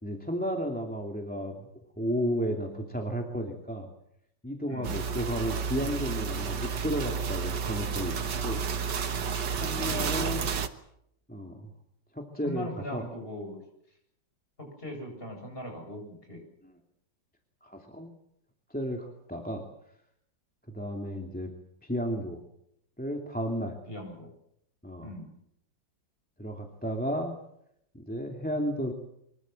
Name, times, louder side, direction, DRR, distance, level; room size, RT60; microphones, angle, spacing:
voice 1, 0.0-1.6 2.0-3.9 4.4-8.6 9.6-10.5 11.3-11.7 12.1-13.1 16.6-16.7 17.6-18.1 18.7-19.6 20.7-21.5 21.8-22.4 23.0-23.8 24.8-25.2 26.4-27.3 27.9-28.9, equal, 5° left, 2 dB, 2.5 m, -33 dB
voice 2, 4.7-5.0 9.7-10.2 12.4-13.6 14.6-16.4 23.9-24.3 25.0-25.3, equal, 30° left, 2 dB, 8.4 m, -40 dB
sound 1, 4.8-10.7, right 6 dB, 65° right, 2.0 m, -31 dB
25.0 x 22.5 x 7.7 m, 0.76 s
omnidirectional pair, 2.0 m